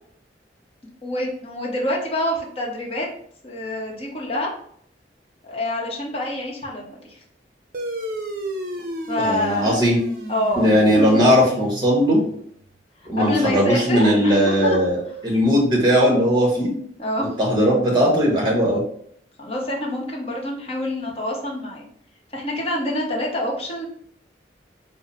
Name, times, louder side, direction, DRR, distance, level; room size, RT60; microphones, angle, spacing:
voice 1, 1.0-3.1 3.4-4.5 5.4-7.2 9.1-9.8 10.3-11.2 13.2-14.8 17.0-17.4 19.4-21.8 22.3-23.9, left 1 dB, 35° left, -2 dB, 0.8 m, -26 dB
sound 1, 7.7-12.6, right 1 dB, 55° right, 0.5 m, -33 dB
voice 2, 9.2-10.0 10.6-12.2 13.0-15.0 15.2-16.7 17.4-18.8, equal, 25° right, -2 dB, 1.2 m, -18 dB
3.9 x 2.0 x 4.1 m, 0.66 s
head